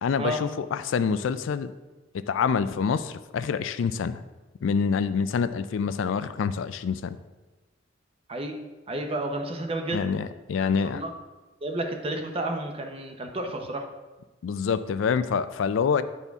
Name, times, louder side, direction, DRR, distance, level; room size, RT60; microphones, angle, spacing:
voice 1, 0.0-1.7 2.3-4.2 4.6-7.2 9.9-11.0 14.4-16.0, left 6 dB, 85° left, 13 dB, 0.4 m, -26 dB
voice 2, 8.3-10.1 10.8-11.1 11.6-13.9, right 1 dB, 30° right, 4 dB, 0.7 m, -31 dB
9.3 x 4.2 x 3.5 m, 1.2 s
head